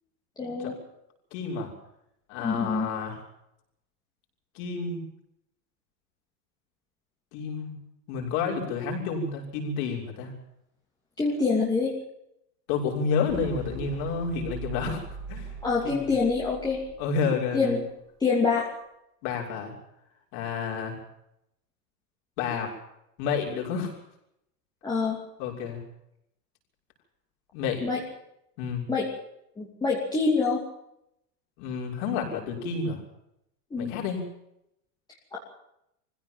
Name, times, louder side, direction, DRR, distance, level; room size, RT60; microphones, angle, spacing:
voice 1, 0.4-0.7 2.4-2.9 11.2-11.9 15.6-16.8 17.5-17.8 18.2-18.7 24.8-25.2 27.8-28.0 28.9-29.1 29.6-30.6 33.7-33.9 35.3-35.4, left 4 dB, 10° left, -4 dB, 2.9 m, -25 dB
voice 2, 1.3-1.7 2.3-3.2 4.5-5.0 7.3-7.8 8.1-10.3 12.7-15.0 15.3-15.5 15.8-16.1 17.0-17.7 19.2-19.7 20.3-21.0 22.4-22.7 23.2-23.9 25.4-25.8 27.5-27.9 28.6-28.8 31.6-33.0 33.8-34.3, left 5 dB, 40° left, 0 dB, 6.5 m, -30 dB
sound 1, 13.3-17.8, right 3 dB, 25° right, 3.3 m, -41 dB
22.5 x 16.5 x 7.6 m, 0.80 s
supercardioid pair, 170°, 48 cm